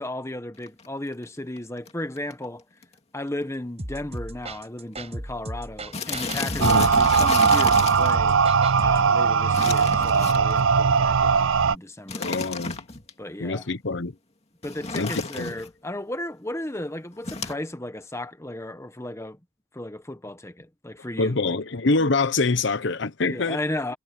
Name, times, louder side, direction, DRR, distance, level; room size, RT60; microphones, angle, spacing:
voice 1, 0.0-2.6 3.1-8.4 8.8-12.3 13.2-13.7 14.6-19.4 19.7-21.6 23.3-24.0, left 1 dB, 15° left, 1.2 m, -34 dB
sound 1, 0.6-0.9 1.6-1.7 1.9-2.0 2.2-2.5 2.8-2.9 3.3-3.4 4.1-4.2 4.4-4.7 5.0-5.1 5.9-8.2 9.5-10.7 12.1-13.1 14.6-15.7 17.2-17.5, left 4 dB, 30° left, 2.4 m, -32 dB
sound 2, 3.8-9.1, right 1 dB, 30° right, 5.5 m, -36 dB
voice 2, 6.6-6.9 12.2-12.8 13.4-14.1 14.9-15.5 21.2-23.6, left 3 dB, 60° left, 0.9 m, -25 dB
sound 3, 6.6-11.8, right 5 dB, 70° right, 0.5 m, -19 dB
head